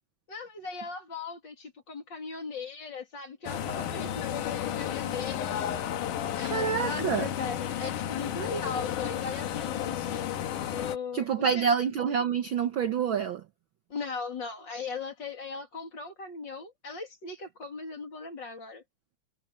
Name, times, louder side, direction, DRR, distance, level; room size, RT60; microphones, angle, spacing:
voice 1, 0.3-5.6 6.4-10.3 10.7-11.7 13.9-18.8, left 4 dB, 35° left, 3.2 m, -38 dB
sound 1, 3.5-11.0, left 10 dB, 90° left, 2.8 m, -32 dB
voice 2, 6.4-7.3 11.1-13.4, right 7 dB, 65° right, 1.2 m, -27 dB
omnidirectional pair, 3.5 m